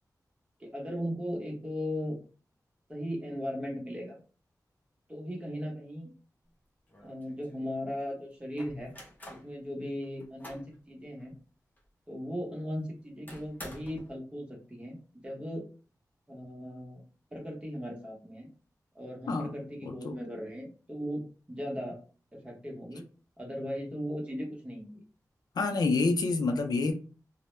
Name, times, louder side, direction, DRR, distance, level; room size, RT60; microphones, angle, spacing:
voice 1, 0.6-2.2 2.9-4.2 5.1-6.1 7.0-8.9 9.3-11.3 12.1-15.7 16.3-17.0 17.3-18.5 18.9-22.0 22.3-23.1 23.4-25.0, equal, 15° right, 0.8 m, -37 dB
sound 1, 6.5-6.6 6.9-7.7 8.6-9.5 10.0-10.7 11.2-11.3 11.8-11.9 13.3-14.1, equal, 25° left, 0.6 m, -48 dB
voice 2, 19.8-20.1 25.6-26.9, left 3 dB, 80° left, 0.4 m, -27 dB
2.1 x 2.1 x 3.0 m
wide cardioid pair, 120°, 7 cm